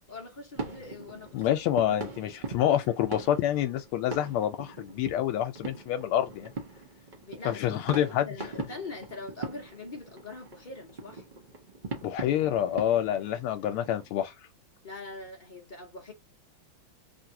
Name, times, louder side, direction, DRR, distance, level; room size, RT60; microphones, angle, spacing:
voice 1, 0.0-1.6 1.9-2.1 7.2-11.2 14.8-16.1, left 3 dB, 60° left, 0.5 m, -43 dB
sound 1, 0.5-14.1, right 3 dB, 70° right, 0.4 m, -42 dB
voice 2, 1.3-6.5 7.4-8.3 12.0-14.3, left 11 dB, 85° left, 1.5 m, -27 dB
3.5 x 2.6 x 2.7 m
omnidirectional pair, 2.3 m